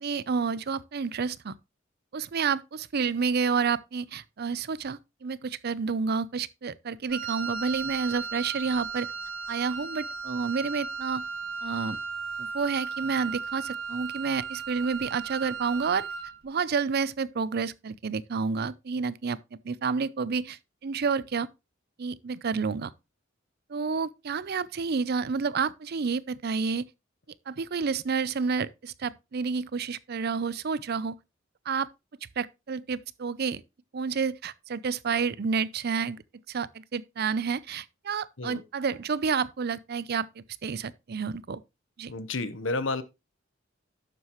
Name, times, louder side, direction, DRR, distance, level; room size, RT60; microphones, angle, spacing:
voice 1, 0.0-1.5 2.1-9.1 9.5-11.3 11.6-12.0 12.4-16.1 16.4-19.4 19.6-21.5 22.0-22.9 23.7-26.9 27.5-31.1 31.7-31.9 32.4-33.6 33.9-36.2 36.5-41.6 42.0-42.1, right 5 dB, 50° right, 0.5 m, -29 dB
Wind instrument woodwind instrument, 7.1-16.4, right 5 dB, 90° right, 1.7 m, -36 dB
voice 2, 42.1-43.0, left 3 dB, 65° left, 1.0 m, -31 dB
11.5 x 7.9 x 3.0 m
head